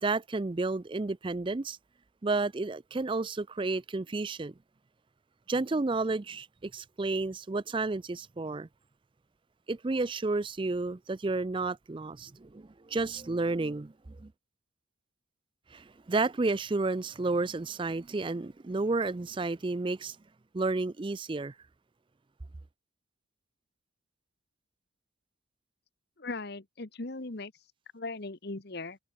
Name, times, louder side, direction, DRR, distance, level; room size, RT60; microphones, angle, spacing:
voice 1, 0.0-1.8 2.2-4.5 5.5-8.7 9.7-14.3 15.7-20.2 20.5-21.5, right 3 dB, 25° right, 0.4 m, -31 dB
voice 2, 26.2-27.5 27.9-29.0, left 3 dB, 50° left, 1.2 m, -38 dB
head